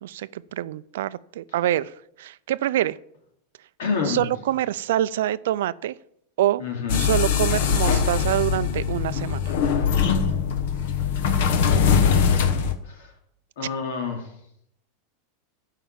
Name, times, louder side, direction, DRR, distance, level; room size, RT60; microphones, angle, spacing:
voice 1, 0.0-3.0 4.1-6.0 6.4-6.6 6.9-9.4, right 13 dB, 75° right, 18 dB, 0.4 m, -25 dB
voice 2, 3.8-4.3 6.6-7.1 11.9-12.6 12.8-13.1 13.6-14.3, left 5 dB, 75° left, 2 dB, 2.8 m, -29 dB
sound 1, 6.9-12.7, left 7 dB, 60° left, 1.0 m, -22 dB
11.0 x 5.8 x 7.4 m, 0.74 s
supercardioid pair, 170°, 0 cm